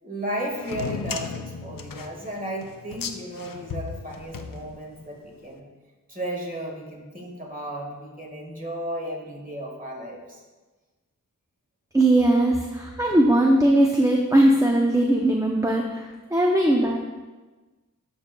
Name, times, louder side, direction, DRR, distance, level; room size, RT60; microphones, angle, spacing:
voice 1, 0.0-5.7 6.1-10.4, right 1 dB, 25° right, -1 dB, 1.6 m, -34 dB
sound 1, 0.6-5.2, left 6 dB, 85° left, 0.5 m, -35 dB
voice 2, 11.9-17.0, right 1 dB, 10° right, 0 dB, 0.6 m, -20 dB
12.5 x 5.2 x 2.3 m, 1.2 s
wide cardioid pair, 60°, 33 cm